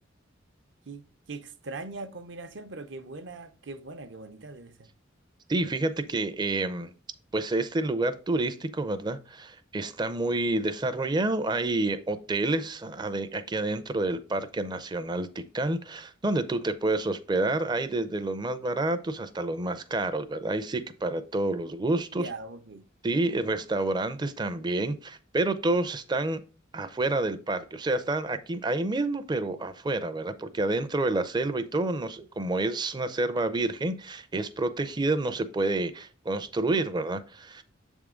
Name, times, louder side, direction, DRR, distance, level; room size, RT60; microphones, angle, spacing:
voice 1, 0.9-4.9 22.1-22.8, right 3 dB, 60° right, 0.7 m, -41 dB
voice 2, 5.5-6.9 7.3-22.3 23.0-26.4 26.7-37.6, right 2 dB, 20° right, 0.5 m, -29 dB
7.5 x 3.6 x 5.0 m
head